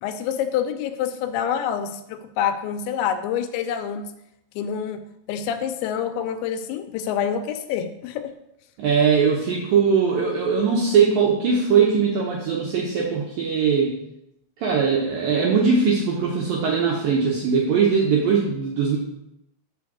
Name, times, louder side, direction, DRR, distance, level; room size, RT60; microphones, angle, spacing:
voice 1, 0.0-4.1 4.6-5.0 5.3-8.3, left 8 dB, 80° left, 8 dB, 2.7 m, -27 dB
voice 2, 8.8-14.0 14.6-19.0, right 6 dB, 85° right, -2 dB, 2.0 m, -20 dB
6.1 x 5.8 x 7.1 m, 0.83 s
omnidirectional pair, 5.6 m